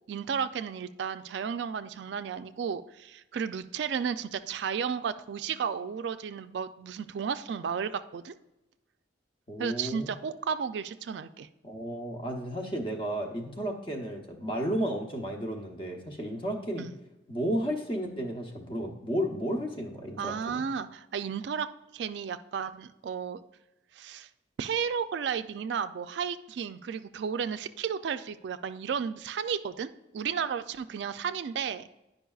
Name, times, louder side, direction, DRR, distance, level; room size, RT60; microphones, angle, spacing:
voice 1, 0.1-8.3 9.6-11.5 16.8-16.9 20.2-21.7 21.9-23.4 23.9-24.3 24.6-31.8, right 7 dB, 75° right, 11 dB, 0.3 m, -33 dB
voice 2, 9.5-10.1 11.6-16.9 17.3-20.6, equal, 30° left, 3 dB, 0.8 m, -33 dB
10.0 x 5.3 x 2.3 m, 0.95 s
head